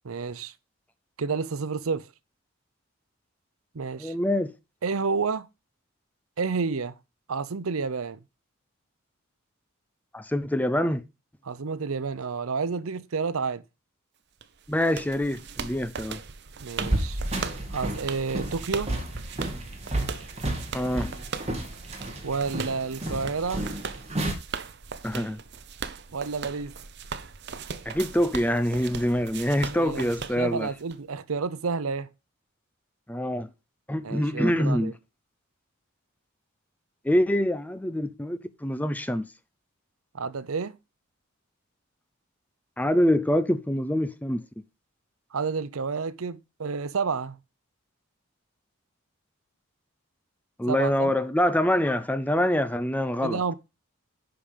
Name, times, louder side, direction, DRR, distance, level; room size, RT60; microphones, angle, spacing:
voice 1, 0.0-0.5 1.2-2.1 3.7-4.2 4.8-5.5 6.4-7.0 7.3-8.2 11.4-13.6 16.6-17.2 17.7-18.9 22.2-23.7 26.1-26.7 29.7-32.1 34.0-34.9 40.1-40.8 45.3-47.4 50.7-51.1 53.2-53.5, right 5 dB, 80° right, 0.6 m, -30 dB
voice 2, 4.0-4.5 10.1-11.0 14.7-16.2 20.7-21.1 25.0-25.4 27.9-30.7 33.1-33.5 33.9-34.9 37.0-39.3 42.8-44.4 50.6-53.5, left 1 dB, 5° left, 0.5 m, -25 dB
sound 1, 14.4-31.0, right 6 dB, 50° right, 0.8 m, -39 dB
sound 2, 16.8-24.3, right 1 dB, 30° right, 2.2 m, -32 dB
10.5 x 5.0 x 5.2 m
head